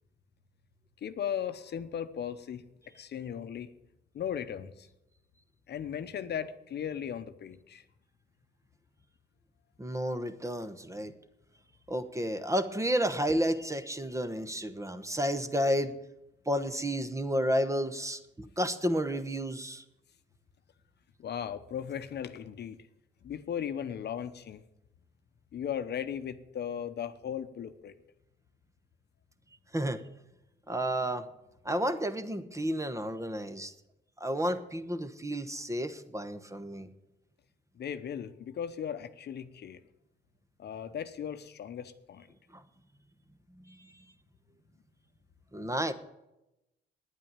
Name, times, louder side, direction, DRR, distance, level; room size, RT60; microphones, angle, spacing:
voice 1, 1.0-2.6 2.9-3.7 4.1-4.9 5.7-7.8 21.2-22.9 23.2-24.6 25.5-27.9 37.8-39.8 40.6-42.3, left 8 dB, 55° left, 10 dB, 0.9 m, -37 dB
voice 2, 9.8-11.1 11.9-15.9 16.5-19.8 29.7-30.0 30.7-31.3 31.6-33.7 34.2-36.9 45.5-45.9, equal, 15° right, 10 dB, 1.1 m, -31 dB
9.8 x 8.9 x 8.9 m, 0.91 s
cardioid pair, 90°, 20 cm